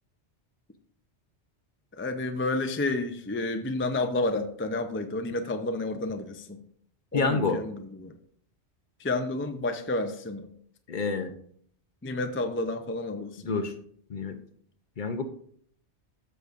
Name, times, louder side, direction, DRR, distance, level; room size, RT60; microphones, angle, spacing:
voice 1, 2.0-6.6 7.1-8.1 9.0-10.5 12.0-13.7, left 2 dB, 15° left, 7 dB, 0.4 m, -30 dB
voice 2, 7.1-7.6 10.9-11.3 13.5-13.7 14.1-14.4 15.0-15.2, left 4 dB, 50° left, 7 dB, 0.8 m, -27 dB
13.5 x 6.7 x 2.5 m, 0.62 s
omnidirectional pair, 1.2 m